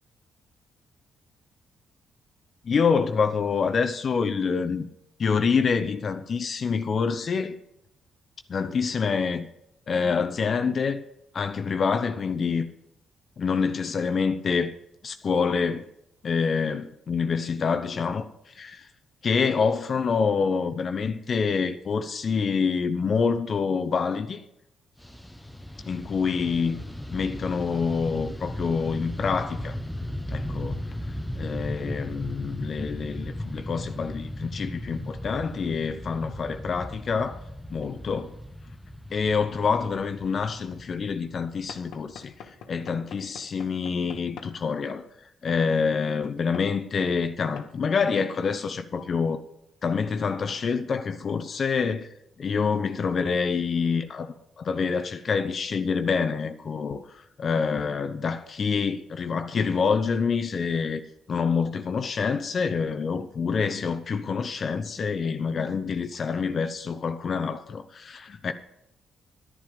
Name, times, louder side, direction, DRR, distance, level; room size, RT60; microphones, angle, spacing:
voice 1, 2.6-4.9 5.2-7.6 8.5-9.5 9.9-11.0 11.3-12.7 13.4-14.7 15.0-15.8 16.2-18.9 19.2-24.4 25.8-26.8 27.1-29.8 30.3-30.8 31.4-37.4 37.7-38.3 39.1-45.0 45.4-49.4 49.8-52.1 52.4-61.0 61.3-68.5, left 5 dB, 45° left, 0.8 m, -26 dB
Fixed-wing aircraft airplane, 25.0-42.4, left 1 dB, 5° left, 1.0 m, -36 dB
Knock / Wood, 41.7-44.6 45.5-45.7 46.5-46.7 47.6-47.7, left 7 dB, 80° left, 1.2 m, -45 dB
11.0 x 10.5 x 5.1 m
cardioid pair, 90°, 0 cm